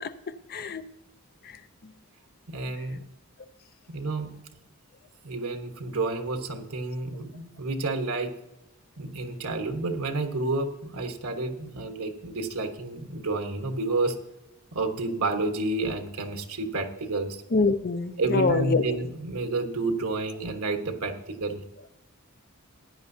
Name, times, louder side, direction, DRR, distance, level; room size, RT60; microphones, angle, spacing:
voice 1, 0.5-0.8 17.5-18.8, left 3 dB, 45° left, 11 dB, 0.6 m, -25 dB
voice 2, 2.5-3.0 3.9-4.3 5.2-8.3 9.0-14.1 14.7-17.4 18.2-21.6, right 2 dB, 80° right, 5 dB, 1.3 m, -30 dB
15.5 x 10.0 x 2.7 m, 0.89 s
head